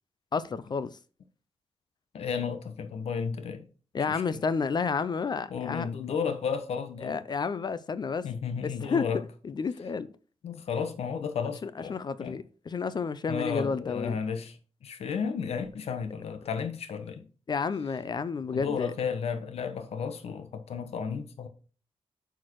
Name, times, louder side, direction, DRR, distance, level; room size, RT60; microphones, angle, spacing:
voice 1, 0.3-1.0 3.9-5.9 7.0-8.2 8.8-9.0 9.4-10.1 11.6-14.2 17.5-18.9, left 5 dB, 45° left, 0.5 m, -31 dB
voice 2, 2.1-3.6 4.1-4.4 5.5-7.2 8.2-9.2 10.4-12.4 13.3-17.2 18.5-21.5, left 6 dB, 80° left, 1.1 m, -33 dB
8.6 x 4.7 x 4.6 m
wide cardioid pair, 105°, 10 cm